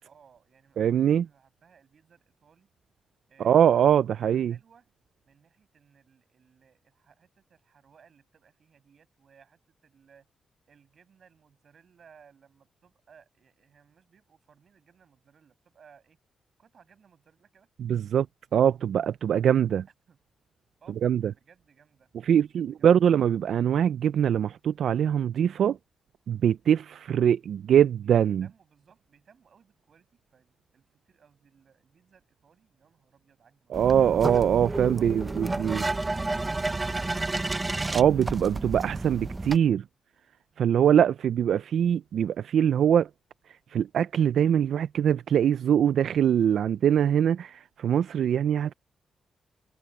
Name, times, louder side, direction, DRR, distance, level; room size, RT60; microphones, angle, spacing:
voice 1, 0.0-2.7 3.3-4.9 5.2-10.3 10.7-16.2 16.6-17.7 19.3-19.5 20.1-20.2 20.8-22.9 23.3-23.5 28.0-33.9, right 7 dB, 45° right, 7.8 m, -61 dB
voice 2, 0.8-1.3 3.4-4.5 17.8-18.3 18.5-19.8 21.0-21.2 22.2-25.8 26.3-28.5 33.7-35.8 37.9-39.8 40.6-43.1 43.7-48.7, right 9 dB, 65° right, 0.3 m, -23 dB
sound 1, 33.7-39.6, right 2 dB, 15° right, 0.7 m, -31 dB
wide cardioid pair, 170°, 0 cm